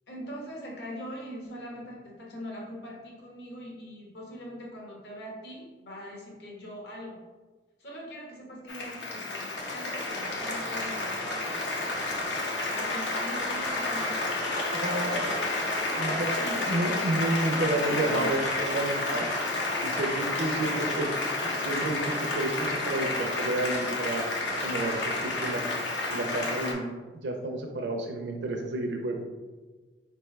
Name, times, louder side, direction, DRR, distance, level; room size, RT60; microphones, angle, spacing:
voice 1, 0.1-7.2 7.8-11.8 12.7-15.3 15.8-17.1 17.5-18.5, equal, 65° left, -2 dB, 1.2 m, -41 dB
Applause, 8.7-26.7, left 2 dB, 80° left, 0.8 m, -30 dB
voice 2, 14.8-15.4 16.0-16.4 16.7-19.4 19.8-21.1 21.4-25.6 26.1-26.8 27.1-29.2, right 2 dB, 80° right, 3 dB, 0.5 m, -31 dB
4.7 x 3.4 x 3.2 m, 1.3 s
head